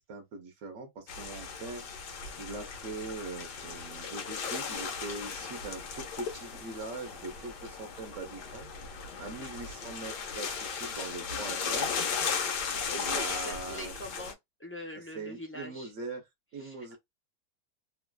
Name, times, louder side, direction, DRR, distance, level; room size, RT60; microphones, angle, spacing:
voice 1, 0.0-1.9 2.4-8.7 9.2-12.0 12.9-13.9 15.1-16.2 16.5-17.0, right 3 dB, 60° right, 0.9 m, -41 dB
sound 1, 1.1-14.3, left 6 dB, 75° left, 1.4 m, -36 dB
voice 2, 12.7-15.9 16.5-16.9, equal, 20° left, 0.3 m, -44 dB
3.1 x 2.3 x 2.2 m
omnidirectional pair, 1.9 m